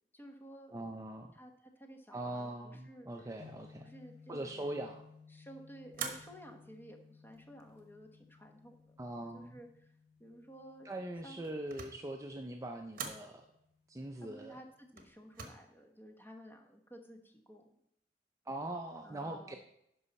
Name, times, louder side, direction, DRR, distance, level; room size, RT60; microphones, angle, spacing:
voice 1, 0.1-0.7 1.3-3.1 3.8-4.9 5.3-8.9 9.3-9.9 10.2-10.9 11.2-11.4 14.2-17.7 19.0-19.6, equal, 10° left, 3 dB, 1.1 m, -53 dB
voice 2, 0.7-1.3 2.1-3.9 4.3-5.0 9.0-9.6 10.8-13.5 13.9-14.6 18.5-19.6, right 1 dB, 20° right, 4 dB, 0.5 m, -42 dB
sound 1, 3.4-15.5, left 5 dB, 65° left, 2.6 m, -61 dB
sound 2, 5.9-6.6 7.3-7.9 11.2-12.1 12.9-13.3 15.0-15.5, right 6 dB, 55° right, 1.2 m, -44 dB
11.0 x 5.5 x 4.1 m, 0.77 s
head